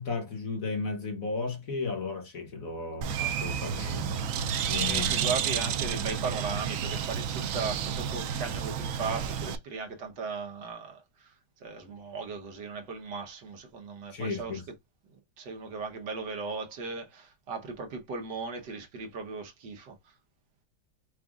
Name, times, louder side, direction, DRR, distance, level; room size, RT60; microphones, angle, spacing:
voice 1, 0.0-4.2 4.7-5.2 14.1-14.6, left 4 dB, 50° left, 1.5 m, -34 dB
Bird, 3.0-9.6, right 8 dB, 85° right, 0.7 m, -31 dB
voice 2, 4.9-11.3 11.6-14.6 15.4-20.0, right 4 dB, 65° right, 1.5 m, -37 dB
5.1 x 2.4 x 3.5 m
omnidirectional pair, 2.1 m